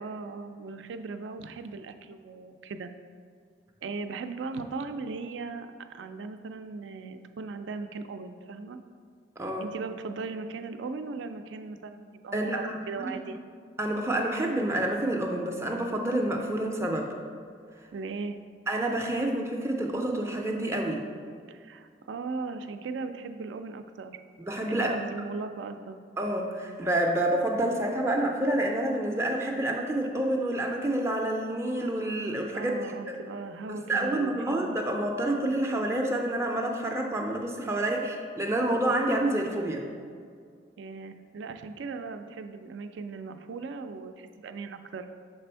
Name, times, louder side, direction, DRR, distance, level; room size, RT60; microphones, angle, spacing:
voice 1, 0.0-2.9 3.8-8.8 9.6-13.4 17.9-18.4 21.5-24.2 24.7-26.0 32.5-34.8 37.7-37.8 40.8-45.1, right 4 dB, 80° right, 8 dB, 0.4 m, -38 dB
voice 2, 9.4-9.7 12.3-13.2 13.8-17.1 18.7-21.0 24.4-24.9 26.2-32.8 33.7-39.8, right 1 dB, 15° right, 1 dB, 0.4 m, -28 dB
6.7 x 3.4 x 4.4 m, 2.1 s
head